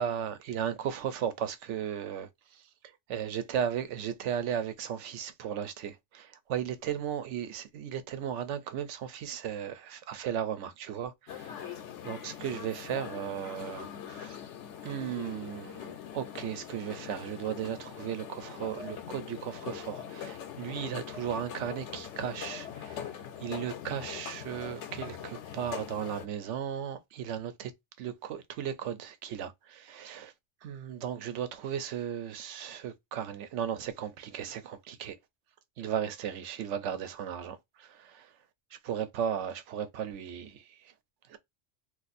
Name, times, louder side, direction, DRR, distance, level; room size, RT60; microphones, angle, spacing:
voice 1, 0.0-2.3 2.8-14.4 14.8-23.1 23.4-27.7 28.0-30.3 30.6-35.2 35.8-38.3 38.7-40.9 41.3-41.4, right 9 dB, 75° right, 0.9 m, -36 dB
sound 1, 11.3-26.3, left 9 dB, 75° left, 0.9 m, -42 dB
2.5 x 2.4 x 4.0 m
omnidirectional pair, 1.3 m